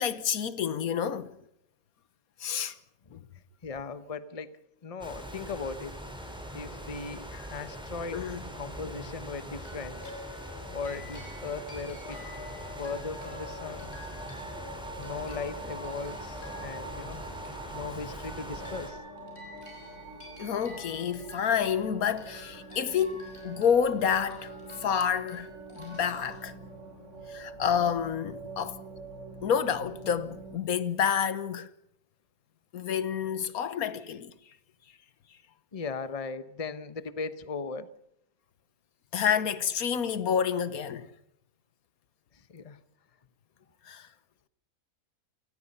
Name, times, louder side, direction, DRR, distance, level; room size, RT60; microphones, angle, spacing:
voice 1, 0.0-1.4 2.4-2.8 3.1-3.3 7.3-7.5 8.1-8.4 20.4-24.5 24.8-26.5 27.3-28.8 29.4-31.7 32.7-34.3 39.1-41.1 43.8-44.1, left 8 dB, 75° left, 1.5 m, -29 dB
voice 2, 3.6-5.9 6.5-8.2 8.6-10.0 10.7-12.2 12.8-13.9 15.0-17.2 17.7-19.0 35.7-37.9 42.5-42.8, left 4 dB, 25° left, 1.0 m, -38 dB
sound 1, 5.0-18.9, equal, 5° right, 4.4 m, -42 dB
sound 2, 9.6-27.0, left 2 dB, 45° left, 8.4 m, -49 dB
sound 3, 12.0-30.6, right 3 dB, 55° right, 3.3 m, -45 dB
28.5 x 19.5 x 5.5 m
omnidirectional pair, 1.5 m